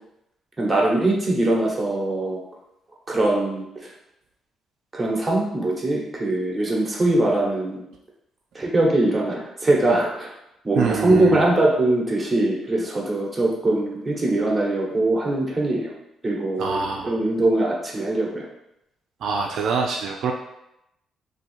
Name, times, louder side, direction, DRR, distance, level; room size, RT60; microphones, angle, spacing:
voice 1, 0.6-2.4 3.1-3.6 4.9-7.8 8.5-10.3 10.6-15.9 16.2-18.4, right 2 dB, 20° right, -3 dB, 1.1 m, -22 dB
voice 2, 10.8-11.5 16.6-17.2 19.2-20.3, right 5 dB, 75° right, 1 dB, 0.4 m, -25 dB
2.7 x 2.7 x 4.3 m, 0.83 s
cardioid pair, 90°, 0 cm